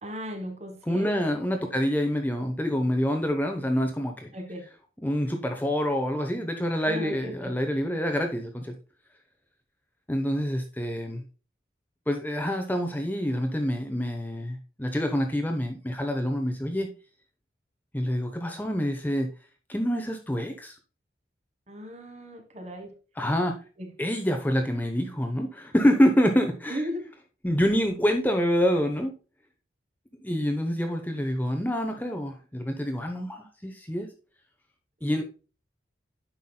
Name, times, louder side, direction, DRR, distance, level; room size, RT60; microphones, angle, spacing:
voice 1, 0.0-1.7 4.3-4.7 6.8-7.6 21.7-22.9 23.8-23.9 26.7-27.0 35.2-35.3, equal, 35° right, 1.5 m, -37 dB
voice 2, 0.9-4.3 5.0-8.7 10.1-11.2 12.1-16.9 17.9-19.3 19.7-20.8 23.2-23.6 24.0-26.8 27.4-29.1 30.2-34.1 35.0-35.2, equal, 10° left, 0.8 m, -26 dB
9.5 x 6.0 x 2.2 m
head